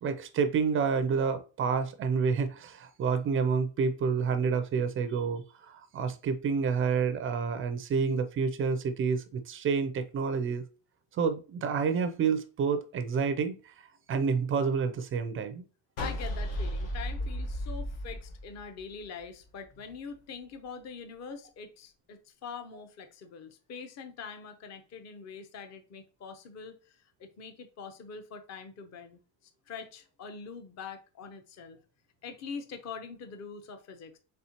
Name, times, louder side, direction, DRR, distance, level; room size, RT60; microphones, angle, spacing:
voice 1, 0.0-10.6 11.1-13.6 14.1-15.6, right 5 dB, 30° right, 0.3 m, -29 dB
sound 1, 16.0-19.2, equal, 70° left, 1.5 m, -34 dB
voice 2, 16.0-29.2 29.7-31.8 32.2-34.2, left 5 dB, 35° left, 0.7 m, -44 dB
4.2 x 3.5 x 2.8 m
cardioid pair, 135°, 46 cm